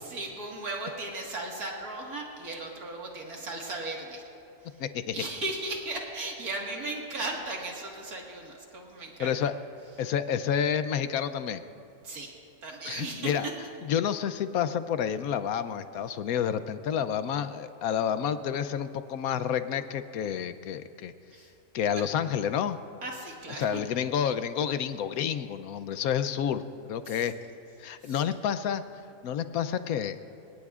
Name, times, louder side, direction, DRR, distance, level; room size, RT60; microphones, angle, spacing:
voice 1, 0.0-4.2 4.6-4.8 5.1-9.3 12.0-12.3 12.6-13.3 21.3-21.5 23.0-23.8 27.1-27.2 28.0-28.2, right 2 dB, 75° right, -1 dB, 2.3 m, -36 dB
voice 2, 4.8-5.2 9.2-9.5 10.0-11.6 12.9-13.5 13.8-21.1 21.7-22.8 23.6-26.6 26.9-27.3 27.8-28.8 29.2-30.2, left 8 dB, 75° left, 11 dB, 1.1 m, -29 dB
28.0 x 18.0 x 2.4 m, 2.7 s
omnidirectional pair, 1.6 m